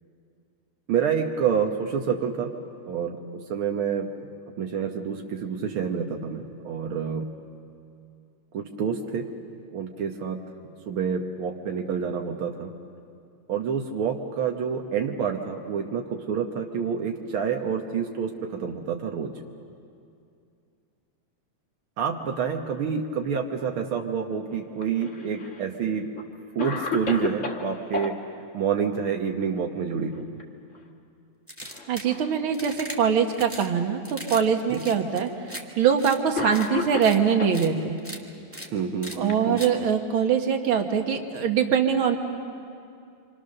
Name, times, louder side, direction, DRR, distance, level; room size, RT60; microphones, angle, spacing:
voice 1, 0.9-2.5 2.9-4.1 4.6-7.3 8.5-9.3 9.7-10.4 10.6-12.7 13.5-19.3 22.0-26.0 26.5-28.2 28.5-30.3 34.7-34.8 38.7-39.6, right 7 dB, 75° right, 2 dB, 1.2 m, -28 dB
Cough, 24.8-25.6 26.2-26.3 26.6-28.1 30.0-30.4 30.7-30.9 31.7-32.4 33.2-33.3 34.3-34.4 35.5-35.7 36.3-37.6 38.6-40.0, left 5 dB, 65° left, 0.7 m, -33 dB
sound 1, 31.5-32.1 32.5-33.0 33.3-33.7 34.0-34.4 34.7-35.6 36.0-36.2 36.5-36.7 37.0-37.2 37.5-37.7 38.0-38.2 38.5-38.7 39.0-39.2 39.6-39.7, equal, 15° right, 0.4 m, -39 dB
voice 2, 31.9-37.9 39.2-42.2, right 7 dB, 55° right, 5 dB, 1.6 m, -23 dB
27.5 x 25.5 x 6.6 m, 2.5 s
omnidirectional pair, 3.9 m